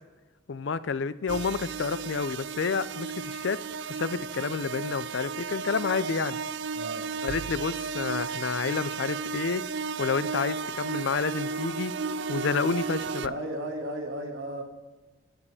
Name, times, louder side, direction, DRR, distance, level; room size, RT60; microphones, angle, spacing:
voice 1, 0.5-6.4 7.2-9.7 10.0-12.0 12.3-13.3, left 5 dB, 65° left, 16 dB, 0.5 m, -29 dB
sound 1, 1.3-13.3, right 5 dB, 55° right, 0.4 m, -34 dB
voice 2, 6.8-7.1 13.2-14.6, right 1 dB, 75° right, 2 dB, 1.8 m, -35 dB
15.5 x 5.3 x 4.8 m, 1.2 s
head